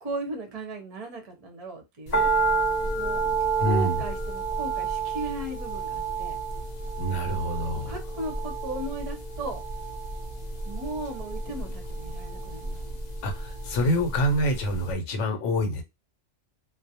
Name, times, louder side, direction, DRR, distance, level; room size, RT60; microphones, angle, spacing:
voice 1, 0.0-2.3 2.9-3.2 3.6-6.4 7.7-9.6 10.6-13.0, right 2 dB, 40° right, 0.6 m, -36 dB
sound 1, 2.1-14.4 14.7-14.8, right 4 dB, 45° left, 0.6 m, -30 dB
voice 2, 3.6-4.0 7.0-8.0 13.2-15.8, equal, 70° left, 1.0 m, -26 dB
2.4 x 2.1 x 2.7 m
omnidirectional pair, 1.3 m